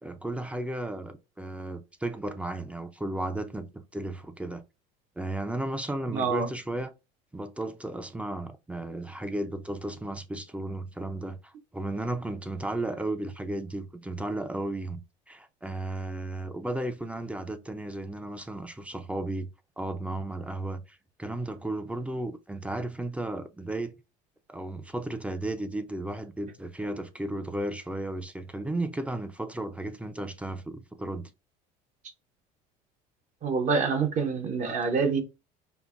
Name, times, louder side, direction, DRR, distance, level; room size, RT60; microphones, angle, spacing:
voice 1, 0.0-4.6 5.2-6.9 7.3-15.0 15.3-19.5 19.8-23.9 24.5-31.3, right 1 dB, 5° right, 0.5 m, -34 dB
voice 2, 6.1-6.5 33.4-35.2, right 5 dB, 45° right, 0.8 m, -26 dB
5.3 x 2.1 x 2.4 m
supercardioid pair, 105°, 17 cm